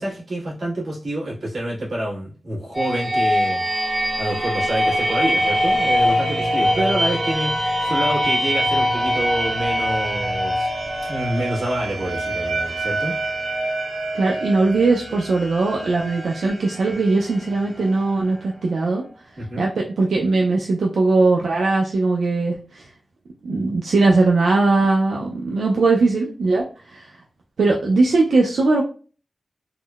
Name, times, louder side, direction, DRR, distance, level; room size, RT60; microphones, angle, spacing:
voice 1, 0.0-3.6 4.2-10.7 11.0-13.1 19.4-19.7, right 1 dB, 60° right, -6 dB, 1.4 m, -27 dB
sound 1, 2.7-18.4, equal, 25° right, 0.9 m, -23 dB
voice 2, 14.1-19.0 19.6-19.7 20.0-22.9 23.4-27.1 27.6-28.8, right 3 dB, 85° right, -1 dB, 0.4 m, -19 dB
3.6 x 2.0 x 2.2 m, 0.38 s
wide cardioid pair, 125°, 0 cm